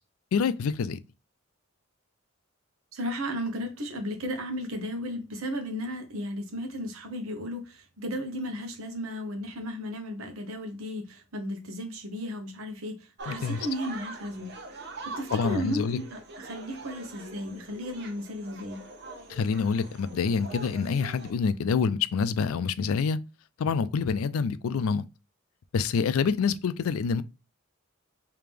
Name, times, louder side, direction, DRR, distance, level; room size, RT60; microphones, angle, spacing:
voice 1, 0.3-1.0 13.3-13.6 15.3-16.0 19.3-23.2 23.6-25.0 25.7-27.2, left 5 dB, 85° left, 0.4 m, -26 dB
voice 2, 2.9-14.6 15.1-18.8, equal, 80° right, 1.0 m, -34 dB
sound 1, 13.2-21.3, right 3 dB, 50° right, 0.7 m, -43 dB
3.4 x 2.8 x 3.4 m
head